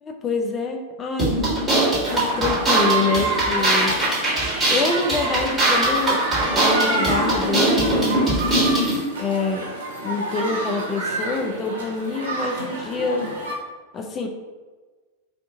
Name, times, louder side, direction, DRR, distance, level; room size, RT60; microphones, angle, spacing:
voice 1, 0.0-1.4 2.1-4.0 4.7-8.2 9.2-9.7 10.0-13.3 13.9-14.3, left 4 dB, 25° left, 4 dB, 0.4 m, -26 dB
sound 1, 1.2-9.0, right 1 dB, 15° right, 1.4 m, -21 dB
sound 2, 2.0-13.5, right 2 dB, 70° right, 0.6 m, -28 dB
2.6 x 2.4 x 3.6 m, 1.3 s
figure-of-eight pair, 90°, 0 cm